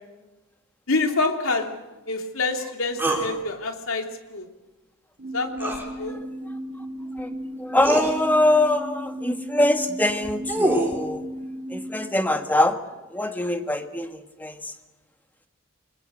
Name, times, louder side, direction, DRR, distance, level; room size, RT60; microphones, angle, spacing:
voice 1, 0.9-1.7 2.1-4.0 4.3-4.4 5.3-5.7 6.0-6.2, left 3 dB, 75° left, 4 dB, 3.0 m, -26 dB
sound 1, 3.0-3.3 5.6-5.9 7.2-7.3 7.8-8.1 10.1-11.0, right 1 dB, 10° right, 3.7 m, -24 dB
sound 2, 5.2-12.1, equal, 40° right, 2.4 m, -35 dB
voice 2, 7.6-11.3 11.7-12.8 13.1-14.6, left 1 dB, 10° left, 7 dB, 1.5 m, -23 dB
28.5 x 21.5 x 6.5 m, 1.1 s
head